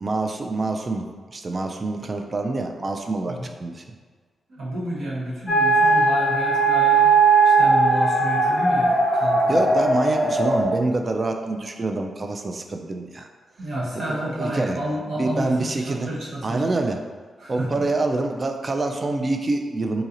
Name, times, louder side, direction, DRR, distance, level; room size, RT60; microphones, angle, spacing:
voice 1, 0.0-1.0 1.3-3.8 9.5-13.3 14.1-14.8 15.2-16.1 16.4-17.0 17.5-20.0, right 2 dB, 40° right, 4 dB, 0.3 m, -26 dB
voice 2, 4.5-7.1 7.4-9.7 13.6-16.6 17.4-17.9, right 1 dB, 75° right, -6 dB, 1.0 m, -30 dB
sound 1, 5.5-10.6, right 3 dB, 25° left, 0.7 m, -18 dB
3.9 x 2.8 x 2.5 m, 1.5 s
cardioid pair, 75°, 0 cm